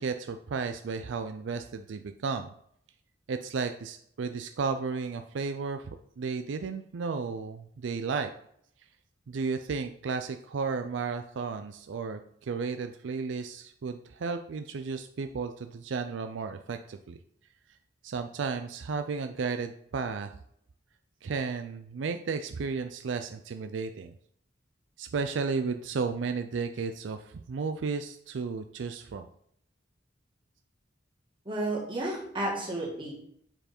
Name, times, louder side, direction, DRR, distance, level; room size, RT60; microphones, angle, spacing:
voice 1, 0.0-2.5 3.3-5.9 6.2-8.3 9.3-17.2 18.0-20.3 21.2-24.1 25.0-29.3, right 5 dB, 75° right, 7 dB, 0.4 m, -33 dB
voice 2, 31.5-33.1, right 1 dB, 25° right, -3 dB, 2.2 m, -32 dB
7.8 x 4.6 x 4.3 m, 0.68 s
head